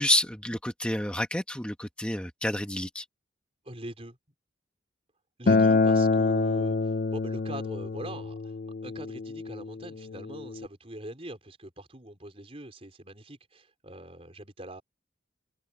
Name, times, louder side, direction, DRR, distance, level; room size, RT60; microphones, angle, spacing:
voice 1, 0.0-3.0, left 1 dB, 5° left, 1.2 m, -29 dB
voice 2, 3.6-4.2 5.4-8.6 8.8-14.8, right 1 dB, 30° right, 5.0 m, -43 dB
Acoustic guitar, 5.5-10.7, left 3 dB, 50° left, 0.4 m, -26 dB
head